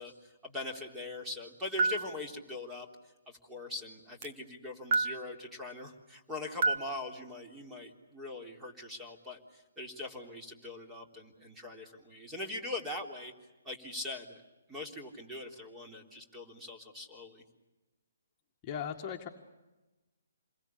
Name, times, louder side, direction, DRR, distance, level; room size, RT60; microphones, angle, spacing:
voice 1, 0.0-13.3 13.6-14.4 14.7-17.4, left 2 dB, 10° right, 2 dB, 3.6 m, -42 dB
sound 1, 1.8-2.1 4.2-4.3 4.9-5.2 6.6-6.8, right 4 dB, 45° right, 1.8 m, -27 dB
voice 2, 18.6-19.3, left 8 dB, 25° left, 1 dB, 1.9 m, -37 dB
28.5 x 22.5 x 8.5 m, 1.1 s
figure-of-eight pair, 135°, 0 cm